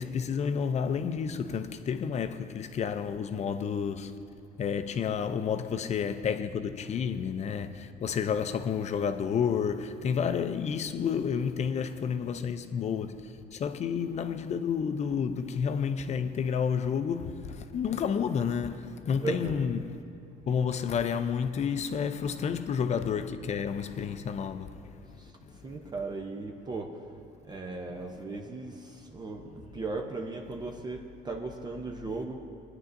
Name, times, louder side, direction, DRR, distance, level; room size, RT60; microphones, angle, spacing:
voice 1, 0.0-4.2 4.6-20.0 20.4-25.2, left 7 dB, 40° left, 0.5 m, -30 dB
voice 2, 19.1-19.7 25.6-26.9 27.5-29.5 29.7-32.4, right 3 dB, 25° right, 0.7 m, -37 dB
18.5 x 9.6 x 2.6 m
cardioid pair, 110°, 17 cm